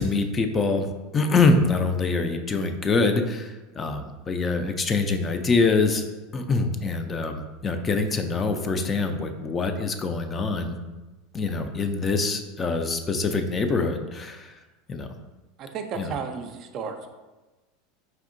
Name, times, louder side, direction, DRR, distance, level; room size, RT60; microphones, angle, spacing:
voice 1, 0.0-6.0 6.3-10.7 11.3-14.6 14.9-15.1 16.0-16.1, left 3 dB, 25° left, 6 dB, 0.4 m, -24 dB
voice 2, 15.6-17.1, right 6 dB, 50° right, 6 dB, 0.4 m, -33 dB
4.3 x 2.7 x 2.5 m, 1.2 s
hypercardioid pair, 100°, 0 cm